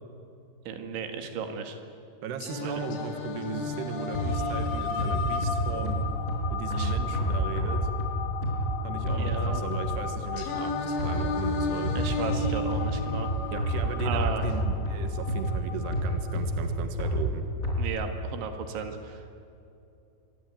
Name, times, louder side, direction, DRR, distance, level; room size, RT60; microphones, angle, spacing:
voice 1, 0.7-1.8 2.6-2.8 6.7-6.9 9.1-9.6 12.0-13.3 14.1-14.4 17.8-19.2, right 6 dB, 85° right, 6 dB, 4.3 m, -35 dB
voice 2, 2.2-6.0 6.5-7.9 8.8-11.9 13.5-17.4, right 6 dB, 70° right, 7 dB, 3.5 m, -37 dB
Singing, 2.4-6.4 10.4-14.4, left 2 dB, 90° left, 4.8 m, -35 dB
sound 1, 2.7-16.7, left 8 dB, 65° left, 3.4 m, -37 dB
sound 2, 4.1-10.2 11.0-17.8, equal, 15° left, 5.4 m, -30 dB
26.0 x 22.5 x 9.3 m, 2.7 s
omnidirectional pair, 5.2 m